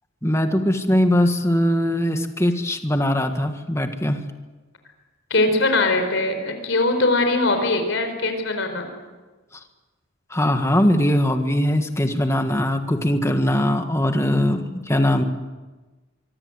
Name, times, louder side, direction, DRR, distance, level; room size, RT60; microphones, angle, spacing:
voice 1, 0.2-4.2 10.3-15.2, left 1 dB, 15° left, 6 dB, 1.7 m, -21 dB
voice 2, 5.3-8.9, left 2 dB, 65° left, 6 dB, 4.5 m, -21 dB
25.0 x 24.0 x 8.1 m, 1.2 s
head